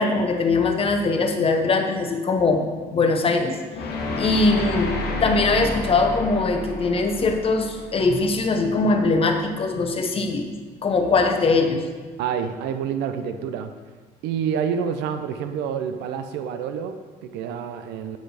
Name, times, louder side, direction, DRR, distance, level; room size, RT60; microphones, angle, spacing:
voice 1, 0.0-3.6 4.2-10.5 10.8-11.8, left 3 dB, 35° left, 4 dB, 0.9 m, -21 dB
sound 1, 3.7-8.8, left 2 dB, 70° left, 1.1 m, -30 dB
voice 2, 12.2-13.7 14.2-18.2, right 7 dB, 85° right, 8 dB, 0.5 m, -28 dB
7.7 x 6.3 x 3.3 m, 1.5 s
cardioid pair, 110°, 17 cm